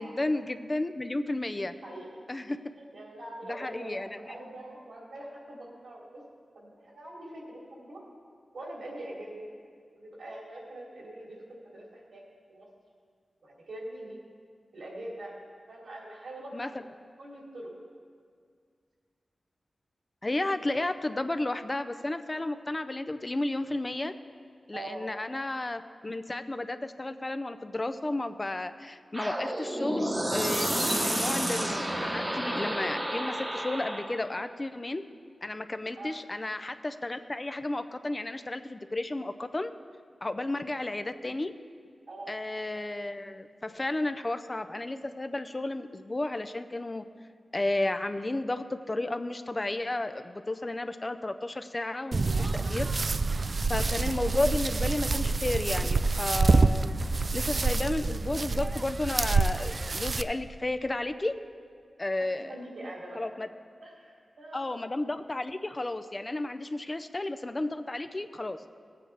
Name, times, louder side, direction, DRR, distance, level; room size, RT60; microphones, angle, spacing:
voice 1, 0.0-1.7 2.3-2.6 3.5-4.4 16.5-16.8 20.2-24.1 24.7-35.0 35.4-39.7 40.2-41.5 42.3-47.0 47.5-52.9 53.7-56.9 57.3-61.3 62.0-62.6 63.2-63.5 64.5-68.6, left 2 dB, 25° left, 10 dB, 0.4 m, -33 dB
voice 2, 1.8-2.2 2.8-6.2 6.5-8.0 8.5-9.5 9.9-12.2 12.5-12.7 13.4-14.2 14.7-15.3 15.7-16.9 17.2-17.7 24.7-25.1 36.0-36.2 40.7-41.1 42.1-42.3 53.4-53.5 62.2-63.2 63.8-64.6, right 1 dB, 85° right, -4 dB, 3.0 m, -43 dB
sound 1, 29.1-34.2, right 1 dB, 20° right, 1.0 m, -30 dB
sound 2, 52.1-60.2, right 3 dB, 45° right, 0.3 m, -27 dB
17.5 x 8.5 x 3.4 m, 2.1 s
wide cardioid pair, 105°, 0 cm